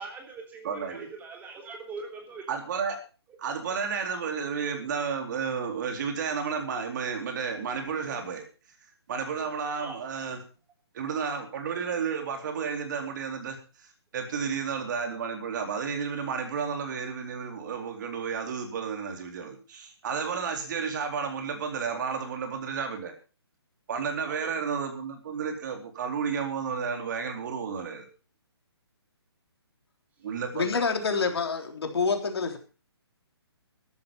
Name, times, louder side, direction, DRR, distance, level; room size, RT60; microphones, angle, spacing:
voice 1, 0.0-2.6 9.8-10.0 24.3-24.6, right 4 dB, 10° right, 2 dB, 3.4 m, -42 dB
voice 2, 0.6-1.1 2.5-3.0 3.4-8.4 9.1-10.4 10.9-23.1 23.9-28.1 30.2-30.8 31.1-31.3, right 6 dB, 45° right, 5 dB, 3.9 m, -32 dB
voice 3, 30.5-32.6, left 5 dB, 65° left, 5 dB, 3.6 m, -27 dB
14.5 x 11.5 x 5.4 m, 0.35 s
hypercardioid pair, 150°, 14 cm